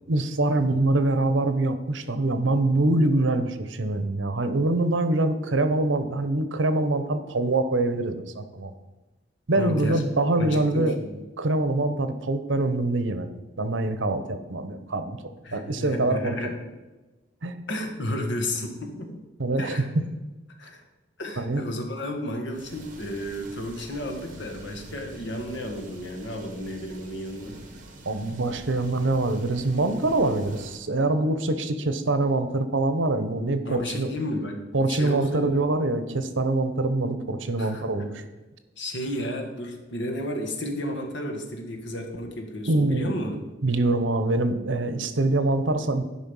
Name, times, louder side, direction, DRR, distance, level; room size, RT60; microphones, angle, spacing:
voice 1, 0.1-8.7 9.5-11.0 11.4-13.3 13.6-15.2 15.5-16.5 17.4-17.7 19.4-20.0 21.4-21.6 28.0-34.2 34.7-38.2 42.7-46.0, right 2 dB, 75° right, 9 dB, 0.9 m, -24 dB
voice 2, 9.6-10.0 10.4-11.2 15.4-16.6 17.7-19.2 19.6-19.8 20.6-20.8 21.2-27.6 33.7-35.6 37.6-38.1 38.8-43.4, left 1 dB, 70° left, 3 dB, 1.6 m, -32 dB
sound 1, 22.5-30.8, right 2 dB, 45° right, 1.6 m, -45 dB
11.5 x 5.3 x 5.5 m, 1.2 s
head